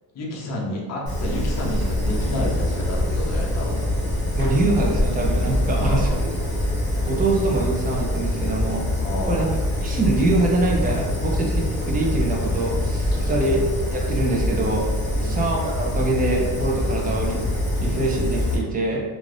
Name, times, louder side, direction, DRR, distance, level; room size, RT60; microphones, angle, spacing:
voice 1, 0.1-3.8 5.7-6.2 9.0-9.5 13.2-13.6 15.1-15.4, left 1 dB, 40° left, -3 dB, 0.6 m, -30 dB
Fire, 1.1-18.6, left 1 dB, 10° left, 1.0 m, -24 dB
voice 2, 4.4-6.3 7.1-8.8 9.3-9.5 9.8-14.9 15.2-17.4 17.8-19.0, right 2 dB, 20° right, -1 dB, 0.3 m, -24 dB
2.5 x 2.4 x 3.2 m, 1.3 s
cardioid pair, 160°, 43 cm